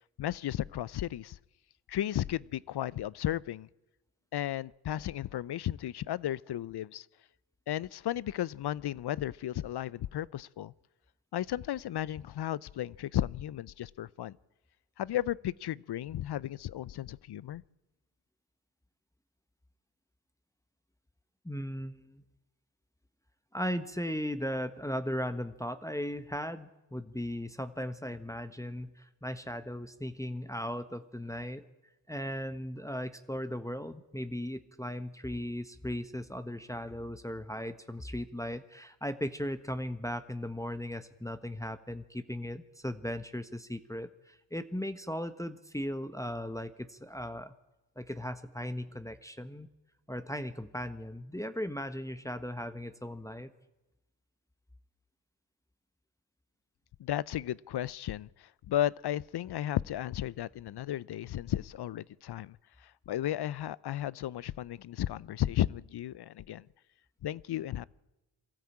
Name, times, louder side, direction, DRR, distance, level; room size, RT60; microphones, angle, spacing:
voice 1, 0.2-1.4 1.9-3.7 4.3-7.1 7.7-10.7 11.3-14.4 15.0-17.6 57.0-66.7 67.2-67.9, left 12 dB, 55° left, 0.6 m, -34 dB
voice 2, 21.4-22.2 23.5-31.7 32.1-47.5 48.0-49.7 50.1-53.5, equal, 5° left, 1.3 m, -37 dB
22.5 x 14.0 x 8.7 m
supercardioid pair, 45°, 49 cm